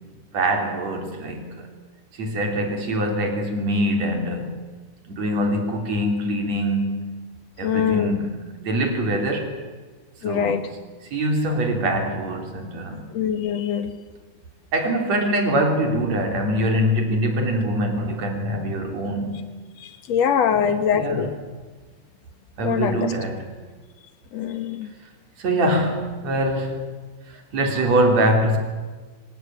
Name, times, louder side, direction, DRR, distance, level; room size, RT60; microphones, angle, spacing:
voice 1, 0.3-1.7 2.1-4.6 5.1-7.1 7.6-9.5 10.2-10.6 11.1-13.0 14.7-19.5 20.5-21.3 22.6-23.5 25.4-26.8 27.5-28.6, right 1 dB, 55° right, 3 dB, 4.5 m, -23 dB
voice 2, 7.6-8.2 10.2-10.7 13.1-13.9 19.8-21.3 22.6-23.1 24.3-24.9, left 8 dB, 60° left, 9 dB, 2.4 m, -23 dB
25.5 x 17.0 x 8.9 m, 1.4 s
omnidirectional pair, 3.7 m